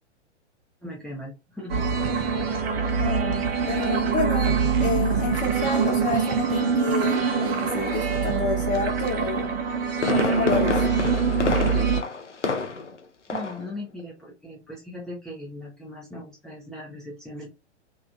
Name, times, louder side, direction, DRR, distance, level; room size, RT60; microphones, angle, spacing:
voice 1, 0.8-1.8 2.5-2.7 13.3-17.5, left 1 dB, ahead, 0.7 m, -39 dB
sound 1, 1.7-12.0, right 6 dB, 55° right, 0.9 m, -24 dB
voice 2, 3.0-9.6 10.1-10.9, left 3 dB, 30° left, 1.0 m, -29 dB
Fireworks, 9.5-13.0 13.3-13.7 14.0-14.1, left 4 dB, 90° left, 0.6 m, -28 dB
3.4 x 3.0 x 2.4 m
figure-of-eight pair, 105°, 35 cm